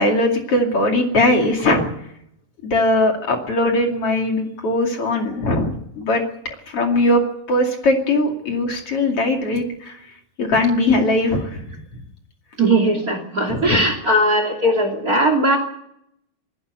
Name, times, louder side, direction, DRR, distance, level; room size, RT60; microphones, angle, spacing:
voice 1, 0.0-1.9 2.6-6.2 6.7-7.2 7.5-10.0 10.4-11.8 13.5-13.8, left 1 dB, 40° left, 3 dB, 2.4 m, -20 dB
voice 2, 12.6-15.6, right 1 dB, 30° right, 7 dB, 1.9 m, -18 dB
19.5 x 16.5 x 8.2 m, 0.74 s
omnidirectional pair, 5.8 m